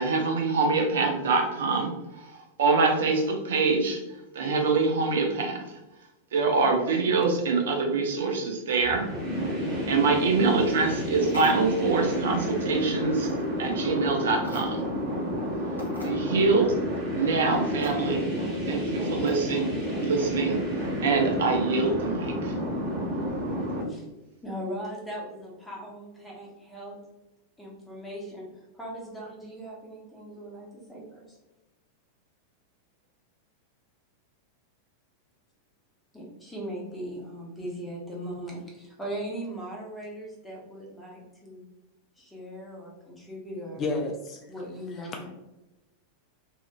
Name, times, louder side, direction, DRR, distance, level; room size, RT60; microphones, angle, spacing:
voice 1, 0.0-4.0 4.3-5.7 6.3-9.1 9.9-13.3 13.6-14.9 16.0-16.8 17.1-18.3 18.7-19.7 20.0-20.6 21.0-22.6, right 4 dB, 60° right, 3 dB, 0.4 m, -25 dB
sound 1, 8.8-23.8, equal, 30° right, 1.4 m, -30 dB
sound 2, 11.2-11.9 13.2-13.4 14.4-15.0 15.4-15.5 15.8-16.2 17.8-18.0 19.3-19.5, left 1 dB, 85° left, 0.6 m, -42 dB
voice 2, 24.4-27.0 27.6-31.4 36.1-41.7 42.2-43.8 44.5-45.3, equal, 5° left, -4 dB, 0.9 m, -39 dB
voice 3, 43.8-44.4 45.0-45.1, left 3 dB, 30° left, 2 dB, 0.3 m, -30 dB
2.8 x 2.4 x 2.3 m, 1.0 s
figure-of-eight pair, 90°, 0 cm